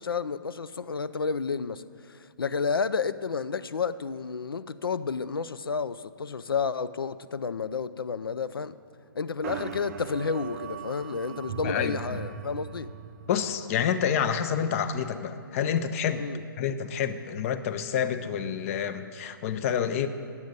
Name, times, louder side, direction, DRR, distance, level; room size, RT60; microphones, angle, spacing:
voice 1, 0.0-8.7 9.2-12.9 16.1-16.4, left 5 dB, 90° left, 0.4 m, -31 dB
sound 1, 9.4-13.6, right 8 dB, 45° right, 0.5 m, -39 dB
voice 2, 11.6-12.2 13.3-16.3 16.6-20.1, left 8 dB, 40° left, 0.6 m, -28 dB
9.6 x 8.1 x 5.2 m
figure-of-eight pair, 130°, 12 cm